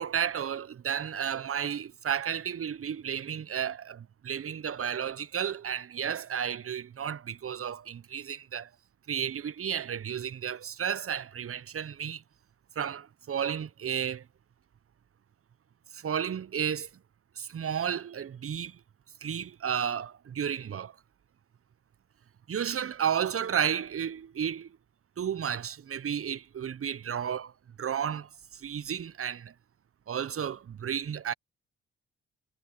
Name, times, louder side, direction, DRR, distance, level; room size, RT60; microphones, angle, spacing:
voice 1, 0.0-8.7 9.1-12.2 12.8-14.2 15.9-16.9 17.4-18.8 19.2-20.9 22.5-24.7 25.2-27.5 27.8-29.5 30.1-31.3, right 8 dB, 40° right, 1.0 m, -32 dB
hypercardioid pair, 50°, 34 cm